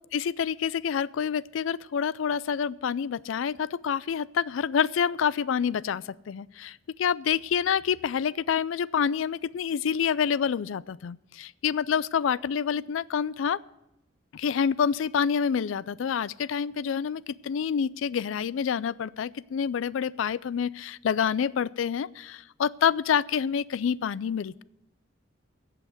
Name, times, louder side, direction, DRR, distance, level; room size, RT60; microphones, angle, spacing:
voice 1, 0.1-13.6 14.3-24.6, left 7 dB, 75° left, 20 dB, 0.4 m, -27 dB
15.5 x 5.8 x 7.8 m, 0.88 s
head